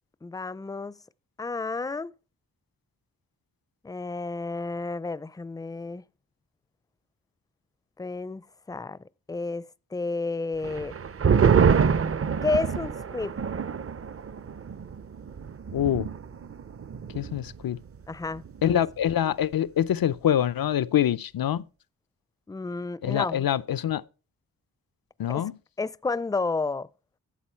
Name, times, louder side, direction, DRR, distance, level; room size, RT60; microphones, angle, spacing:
voice 1, 0.2-1.0 1.4-2.1 3.8-6.0 8.0-9.0 9.3-11.0 12.4-13.4 18.1-18.8 22.5-23.5 25.3-25.5 25.8-26.9, left 3 dB, 10° left, 0.4 m, -31 dB
sound 1, 10.6-17.6 17.9-18.0 18.3-18.8, right 6 dB, 40° right, 0.6 m, -26 dB
voice 2, 15.7-16.1 17.1-17.8 18.6-21.7 23.0-24.0 25.2-25.6, left 10 dB, 80° left, 0.6 m, -25 dB
12.5 x 7.4 x 4.4 m
wide cardioid pair, 70°, 35 cm